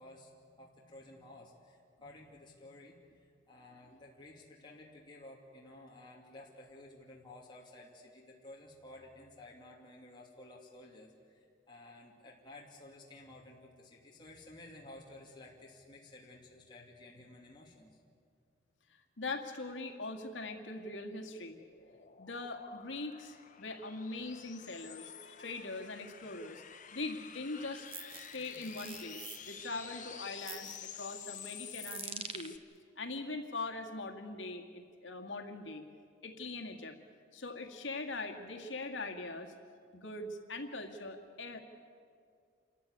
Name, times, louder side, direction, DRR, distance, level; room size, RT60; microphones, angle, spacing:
voice 1, 0.0-18.0, left 2 dB, 25° left, -3 dB, 2.7 m, -54 dB
voice 2, 19.2-21.6 22.2-26.6 26.9-32.6 33.0-35.8 36.2-37.0 37.3-39.5 39.9-41.6, left 3 dB, 75° left, 4 dB, 2.0 m, -42 dB
sound 1, 21.2-32.6, left 9 dB, 45° left, 1.1 m, -50 dB
sound 2, 27.5-32.5, right 6 dB, 30° right, 1.0 m, -47 dB
28.0 x 14.0 x 9.7 m, 2.2 s
head